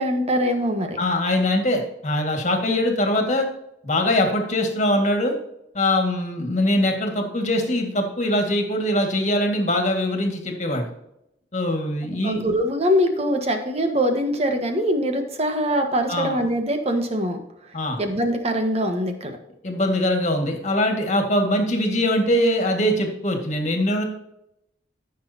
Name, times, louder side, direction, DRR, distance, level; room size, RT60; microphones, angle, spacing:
voice 1, 0.0-1.0 12.2-17.4 18.0-19.4, equal, 35° right, 5 dB, 1.4 m, -23 dB
voice 2, 1.0-3.5 3.8-5.4 5.7-10.9 11.5-12.4 16.1-16.4 17.7-18.0 19.6-24.0, left 1 dB, 40° left, 3 dB, 1.9 m, -22 dB
14.5 x 6.5 x 2.8 m, 0.81 s
head